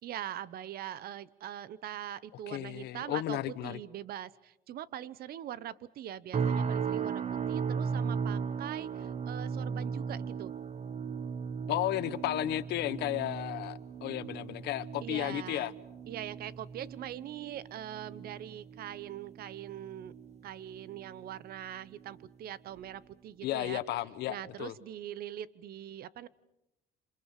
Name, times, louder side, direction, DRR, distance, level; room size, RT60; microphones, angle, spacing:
voice 1, 0.0-10.6 15.0-15.7 16.1-20.2 20.4-23.8 24.3-26.3, right 11 dB, 65° right, 1.1 m, -42 dB
voice 2, 2.5-3.8 11.7-15.7 23.4-24.7, left 15 dB, 80° left, 1.1 m, -33 dB
sound 1, 6.3-21.5 21.9-22.3 22.8-23.0, right 6 dB, 40° right, 1.7 m, -37 dB
28.0 x 27.5 x 6.7 m
cardioid pair, 110°, 17 cm